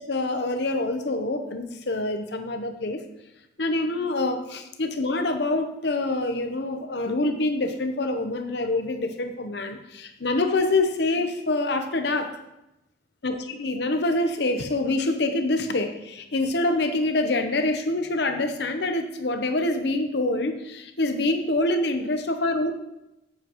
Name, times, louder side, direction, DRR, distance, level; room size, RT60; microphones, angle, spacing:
voice 1, 0.0-3.0 3.6-12.4 13.2-22.7, left 2 dB, 60° left, 7 dB, 0.8 m, -26 dB
9.2 x 7.5 x 3.0 m, 0.90 s
head